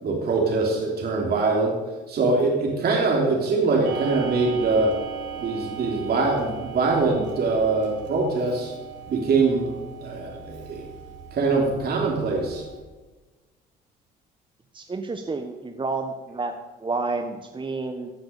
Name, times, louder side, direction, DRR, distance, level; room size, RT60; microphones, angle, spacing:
voice 1, 0.0-1.7 2.1-4.9 5.4-8.7 9.1-9.7 10.0-10.8 11.3-12.6, right 3 dB, 50° right, -1 dB, 3.4 m, -23 dB
Clock, 3.8-12.8, right 7 dB, 70° right, 3.3 m, -38 dB
voice 2, 14.7-16.5 16.8-18.1, right 3 dB, 25° right, 6 dB, 1.3 m, -30 dB
16.0 x 7.8 x 7.1 m, 1.2 s
hypercardioid pair, 65°, 20 cm